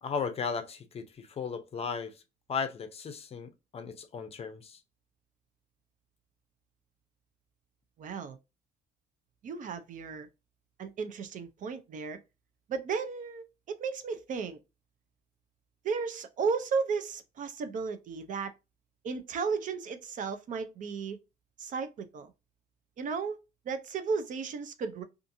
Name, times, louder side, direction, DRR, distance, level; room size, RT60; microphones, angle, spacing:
voice 1, 0.0-2.1 2.5-4.8, left 6 dB, 35° left, 0.6 m, -36 dB
voice 2, 8.0-8.4 9.4-10.3 10.8-12.2 12.7-13.5 13.8-14.6 15.8-18.5 19.0-21.2 21.6-22.3 23.0-23.4 23.7-25.0, right 5 dB, 50° right, 0.5 m, -34 dB
2.6 x 2.5 x 2.6 m
cardioid pair, 110°, 17 cm